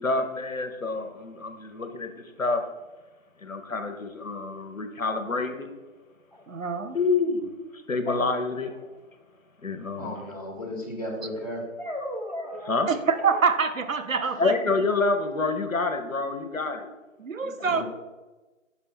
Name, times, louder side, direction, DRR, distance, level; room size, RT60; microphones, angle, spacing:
voice 1, 0.0-2.6 3.4-5.7 6.9-7.5 7.9-8.7 9.6-10.2 12.6-12.9 14.4-16.9 17.4-17.7, left 3 dB, 75° left, 1.0 m, -27 dB
sound 1, 6.3-6.4 8.1-9.0 11.8-13.5, equal, 30° right, 0.5 m, -36 dB
voice 2, 6.5-7.0 12.9-14.5 17.2-17.8, right 5 dB, 70° right, 0.7 m, -25 dB
voice 3, 10.0-11.6 14.2-14.3 17.6-17.8, left 1 dB, 30° left, 1.6 m, -35 dB
5.7 x 5.5 x 4.5 m
figure-of-eight pair, 155°, 41 cm